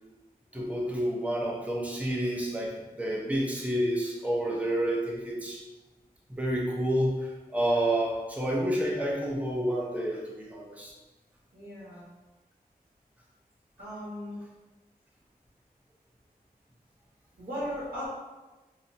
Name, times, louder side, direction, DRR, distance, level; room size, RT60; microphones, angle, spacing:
voice 1, 0.5-5.6 6.3-10.9, right 1 dB, 10° right, -2 dB, 0.7 m, -29 dB
voice 2, 11.5-12.0 13.8-14.4 17.4-18.1, equal, 70° right, -12 dB, 1.4 m, -37 dB
5.5 x 2.1 x 2.7 m, 1.2 s
wide cardioid pair, 85°, 16 cm